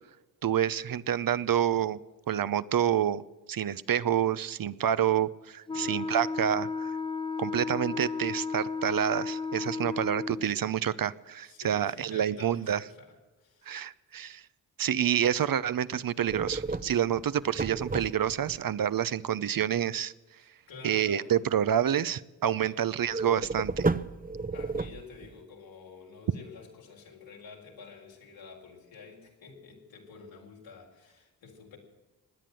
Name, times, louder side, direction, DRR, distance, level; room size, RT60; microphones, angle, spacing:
voice 1, 0.4-2.0 2.3-3.2 3.5-7.0 7.4-12.8 13.7-14.4 14.8-20.1 20.8-23.9, right 9 dB, 50° right, 17 dB, 0.7 m, -28 dB
voice 2, 5.7-6.1 11.5-13.8 20.4-21.3 22.6-22.8 24.5-31.8, left 5 dB, 85° left, -1 dB, 4.2 m, -49 dB
Wind instrument woodwind instrument, 5.7-10.5, left 4 dB, 10° left, 0.5 m, -34 dB
sound 1, 16.3-18.6 23.1-25.4, right 3 dB, 20° right, 0.8 m, -32 dB
17.0 x 10.0 x 7.7 m, 1.2 s
supercardioid pair, 45°, 44 cm